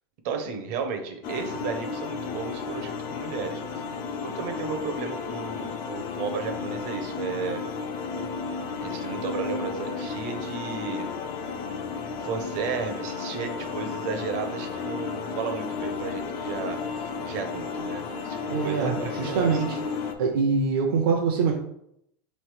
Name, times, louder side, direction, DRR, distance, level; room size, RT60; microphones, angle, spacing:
voice 1, 0.2-3.8 4.2-7.6 8.8-11.3 12.2-19.6, right 5 dB, 40° right, 5 dB, 0.6 m, -34 dB
sound 1, 1.2-20.1, left 5 dB, 35° left, 0.4 m, -33 dB
voice 2, 18.5-19.8 20.2-21.5, right 5 dB, 75° right, 0 dB, 0.7 m, -24 dB
3.4 x 3.2 x 4.8 m, 0.74 s
supercardioid pair, 175°, 12 cm